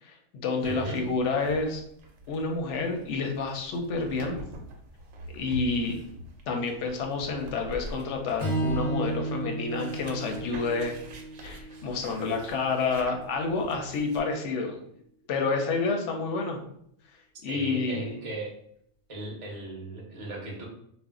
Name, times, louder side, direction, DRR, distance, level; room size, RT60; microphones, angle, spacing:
voice 1, 0.0-1.8 2.3-4.4 5.3-6.0 6.5-11.0 11.4-14.8 15.3-16.6 17.4-18.1, left 4 dB, 65° left, 3 dB, 0.8 m, -29 dB
voice 2, 0.6-1.0 17.5-18.5 19.1-20.7, right 2 dB, 35° right, -2 dB, 0.6 m, -37 dB
sound 1, 0.6-14.2, equal, 75° right, 0.9 m, -45 dB
Strum, 8.4-12.7, right 2 dB, 30° left, 0.7 m, -33 dB
2.5 x 2.0 x 3.6 m, 0.70 s
omnidirectional pair, 1.5 m